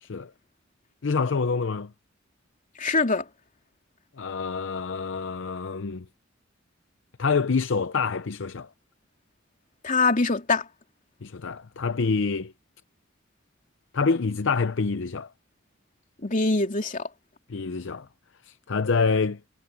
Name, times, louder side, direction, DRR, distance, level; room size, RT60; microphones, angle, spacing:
voice 1, 0.0-0.3 1.0-1.9 4.2-6.0 7.2-8.7 11.2-12.5 13.9-15.3 17.5-18.1 18.5-19.4, left 4 dB, 70° left, 0.6 m, -26 dB
voice 2, 2.8-3.2 9.8-10.7 16.2-17.1, left 3 dB, 40° left, 2.9 m, -23 dB
head